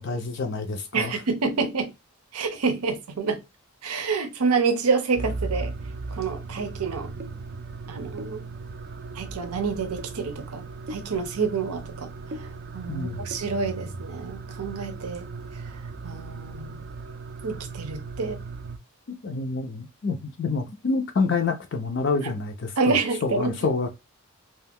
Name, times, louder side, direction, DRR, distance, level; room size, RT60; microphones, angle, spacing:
voice 1, 0.0-1.2 12.9-13.3 19.1-23.9, left 4 dB, 50° left, 0.4 m, -28 dB
voice 2, 0.9-1.9 2.3-3.4 3.8-5.7 6.2-7.1 7.9-8.4 9.1-10.6 10.9-12.1 12.7-15.3 16.0-16.8 17.4-18.4 22.2-22.3 22.8-23.5, right 4 dB, 85° right, 0.6 m, -27 dB
sound 1, 5.2-18.8, right 3 dB, 45° right, 0.3 m, -37 dB
2.4 x 2.1 x 3.5 m
head